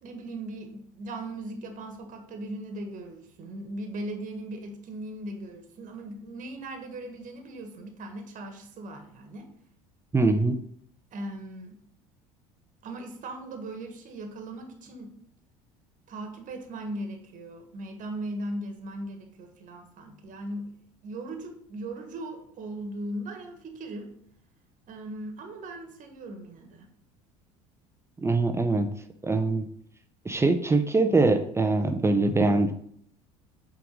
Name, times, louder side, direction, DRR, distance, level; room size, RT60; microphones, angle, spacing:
voice 1, 0.0-9.5 11.1-11.8 12.8-15.1 16.1-20.7 21.0-24.1 24.9-26.9, right 1 dB, 50° right, 5 dB, 1.4 m, -38 dB
voice 2, 10.1-10.6 28.2-28.9 29.2-29.7 30.2-32.7, right 3 dB, 15° right, 7 dB, 0.7 m, -23 dB
5.6 x 3.8 x 5.3 m, 0.66 s
hypercardioid pair, 70°, 18 cm